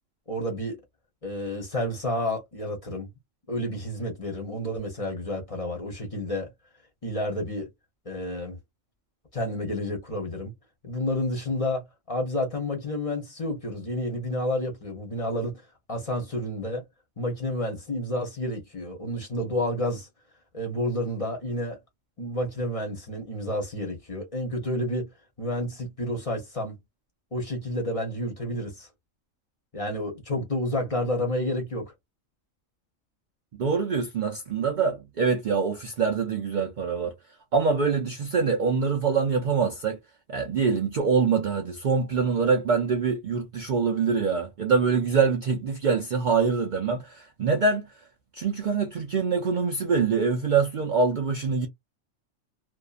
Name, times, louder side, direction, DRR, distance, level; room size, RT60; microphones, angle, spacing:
voice 1, 0.3-0.8 1.2-3.1 3.5-6.5 7.0-7.7 8.1-8.6 9.3-10.5 10.8-15.6 15.9-16.8 17.2-20.1 20.5-21.8 22.2-25.1 25.4-26.8 27.3-28.9 29.7-31.9, left 1 dB, 35° left, 0.7 m, -30 dB
voice 2, 33.6-37.1 37.5-40.0 40.3-47.8 48.3-51.7, right 5 dB, 85° right, 0.4 m, -24 dB
2.6 x 2.2 x 2.3 m
omnidirectional pair, 1.4 m